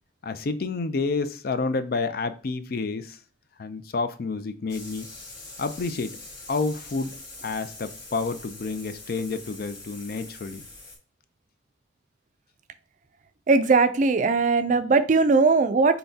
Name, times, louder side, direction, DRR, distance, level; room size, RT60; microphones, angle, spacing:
voice 1, 0.2-3.2 3.6-5.1 5.6-6.2 6.5-7.2 7.4-10.6, left 4 dB, 55° left, 11 dB, 0.4 m, -29 dB
sound 1, 4.7-11.0, left 2 dB, 20° left, 1.7 m, -43 dB
voice 2, 13.5-16.0, right 4 dB, 40° right, 11 dB, 0.4 m, -19 dB
5.7 x 3.4 x 2.7 m, 0.37 s
head